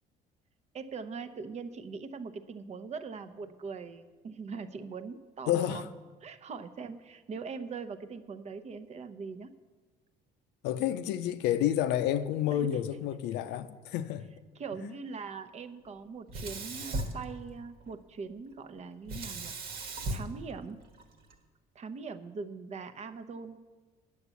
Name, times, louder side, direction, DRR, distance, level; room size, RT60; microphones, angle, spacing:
voice 1, 0.7-5.8 6.2-9.5 12.5-12.8 14.6-20.8 21.7-23.6, right 5 dB, 40° right, 0.8 m, -41 dB
voice 2, 5.5-5.9 10.6-14.3 14.8-14.9, left 11 dB, 90° left, 0.6 m, -30 dB
Sink (filling or washing), 16.3-17.9 19.1-21.3, right 2 dB, 65° right, 1.4 m, -38 dB
9.4 x 7.1 x 8.3 m
cardioid pair, 110°, 17 cm